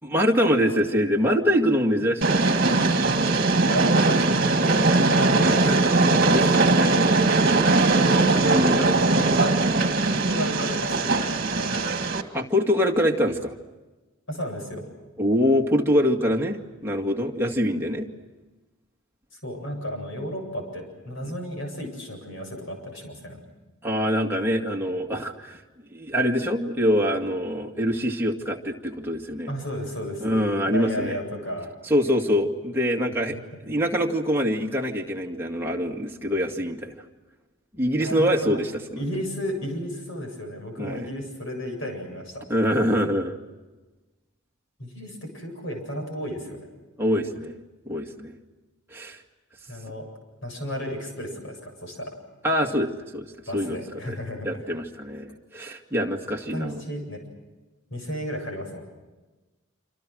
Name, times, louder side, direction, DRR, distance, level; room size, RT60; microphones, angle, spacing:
voice 1, 0.0-2.4 6.3-7.0 8.3-8.9 12.3-13.5 15.2-18.1 23.8-25.6 25.9-29.5 30.2-31.2 31.8-33.4 33.7-36.9 37.7-39.0 40.8-41.1 42.5-43.4 47.0-47.6 47.9-48.3 48.9-49.2 52.4-53.3 53.5-54.2 54.5-56.8, equal, 10° right, -1 dB, 2.1 m, -24 dB
Train, 2.2-12.2, right 3 dB, 45° right, 1.9 m, -20 dB
voice 2, 2.7-3.0 3.7-5.9 8.4-9.6 10.1-12.0 14.3-14.9 19.4-23.4 29.5-30.4 30.7-31.7 33.3-33.4 38.0-38.6 39.0-42.4 44.8-46.6 49.7-50.1 50.4-52.1 53.5-54.6 56.5-57.2 57.9-58.8, equal, 65° left, 3 dB, 8.0 m, -33 dB
27.0 x 27.0 x 6.3 m, 1.2 s
head